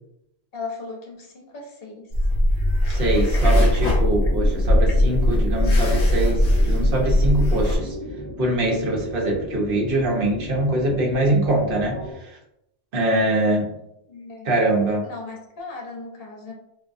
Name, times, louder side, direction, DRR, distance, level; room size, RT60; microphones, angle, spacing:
voice 1, 0.5-2.1 14.1-14.5 15.0-16.5, left 3 dB, 60° left, 0 dB, 1.0 m, -37 dB
sound 1, 2.1-7.8, left 1 dB, 40° left, 0.7 m, -19 dB
voice 2, 2.9-7.9 8.4-12.4 12.9-13.7 14.4-15.1, right 1 dB, 55° right, -1 dB, 0.9 m, -23 dB
sound 2, 3.4-12.1, left 1 dB, 15° left, 1.5 m, -35 dB
3.6 x 2.6 x 2.5 m, 0.82 s
omnidirectional pair, 1.2 m